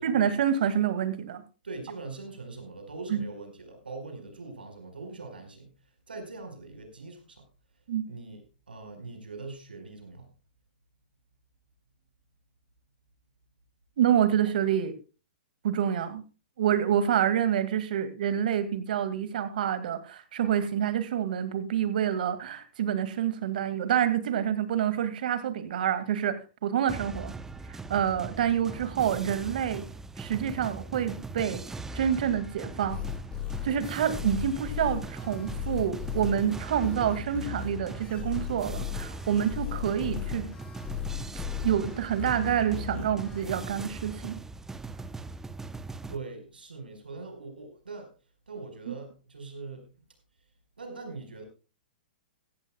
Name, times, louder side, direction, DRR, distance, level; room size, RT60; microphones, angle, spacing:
voice 1, 0.0-1.4 3.1-3.2 7.9-8.1 14.0-14.9 15.6-16.2 16.6-27.3 27.7-29.9 30.2-31.6 31.9-33.0 33.6-40.5 41.6-44.4, right 9 dB, 65° right, 12 dB, 2.1 m, -27 dB
voice 2, 1.6-7.4 8.1-8.4 8.7-10.3 46.1-48.1 48.5-50.1 50.8-51.4, right 3 dB, 90° right, 6 dB, 4.7 m, -42 dB
sound 1, 26.9-46.2, right 3 dB, 10° right, 0.8 m, -40 dB
sound 2, 32.9-43.4, left 10 dB, 20° left, 4.8 m, -37 dB
15.5 x 15.0 x 2.3 m, 0.33 s
hypercardioid pair, 120°, 5 cm